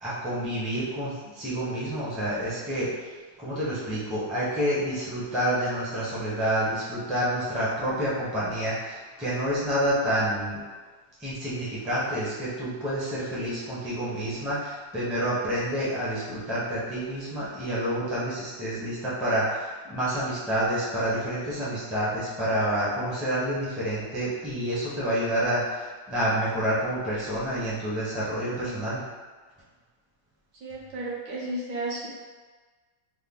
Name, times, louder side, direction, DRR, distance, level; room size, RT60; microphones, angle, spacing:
voice 1, 0.0-2.9 3.4-10.6 11.2-29.0, equal, ahead, -9 dB, 0.5 m, -28 dB
voice 2, 28.5-28.9 30.5-32.1, right 2 dB, 75° right, -5 dB, 1.4 m, -34 dB
3.7 x 2.2 x 3.6 m, 1.4 s
omnidirectional pair, 1.9 m